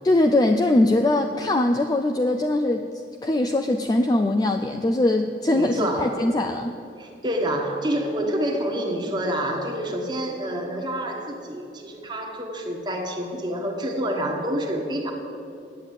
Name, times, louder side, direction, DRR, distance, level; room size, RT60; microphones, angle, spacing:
voice 1, 0.0-2.9 3.2-6.8, left 1 dB, 20° left, 6 dB, 0.3 m, -21 dB
voice 2, 5.5-6.3 7.0-15.1, right 1 dB, 25° right, 2 dB, 1.3 m, -28 dB
9.8 x 8.2 x 8.3 m, 2.7 s
head